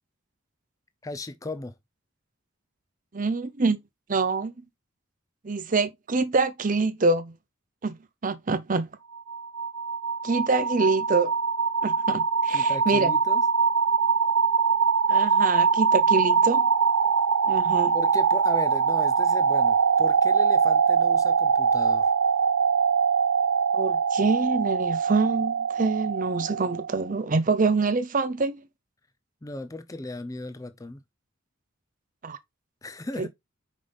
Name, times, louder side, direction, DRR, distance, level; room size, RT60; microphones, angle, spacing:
voice 1, 1.0-1.8 12.5-13.4 17.9-22.1 29.4-31.0 32.8-33.3, left 2 dB, 15° left, 0.5 m, -36 dB
voice 2, 3.1-3.8 4.1-4.5 5.4-7.3 7.8-8.0 8.2-8.9 10.2-11.3 11.8-13.1 15.1-16.7 17.5-17.9 23.7-28.6 32.2-32.4 33.2-33.3, right 3 dB, 40° right, 0.6 m, -25 dB
sound 1, 9.2-27.0, right 5 dB, 90° right, 0.6 m, -23 dB
5.7 x 5.1 x 3.5 m
head